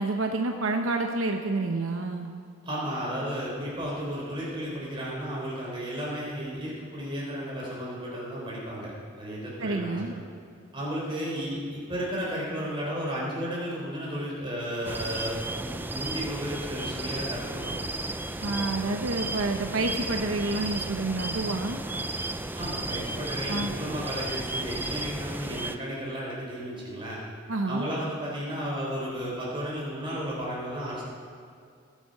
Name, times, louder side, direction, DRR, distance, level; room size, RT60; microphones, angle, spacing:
voice 1, 0.0-2.3 9.6-10.1 18.4-21.8 23.5-23.7 27.5-27.9, right 2 dB, 80° right, 4 dB, 0.8 m, -28 dB
voice 2, 2.6-8.9 9.2-10.2 10.7-17.8 22.5-27.2 27.7-31.0, equal, 25° right, -5 dB, 4.1 m, -33 dB
sound 1, 14.8-25.8, right 2 dB, 10° right, 0.4 m, -34 dB
19.5 x 8.5 x 5.4 m, 2.3 s
head